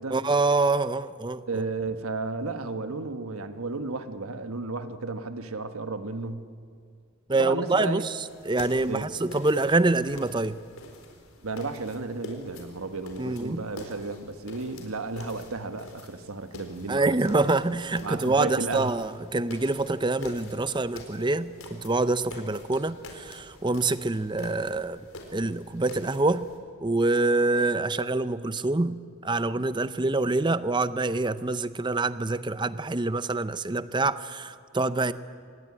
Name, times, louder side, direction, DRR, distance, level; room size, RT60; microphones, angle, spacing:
voice 1, 0.1-1.4 7.3-8.0 8.5-10.6 13.2-13.6 16.9-25.0 25.3-26.5 26.8-35.1, right 2 dB, 20° right, 14 dB, 0.6 m, -26 dB
voice 2, 1.5-6.5 7.4-8.1 8.9-9.1 11.4-17.2 18.0-19.0, right 3 dB, 90° right, 9 dB, 1.3 m, -33 dB
sound 1, 8.2-26.6, left 1 dB, 80° left, 4.2 m, -46 dB
25.0 x 19.0 x 9.8 m, 2.2 s
head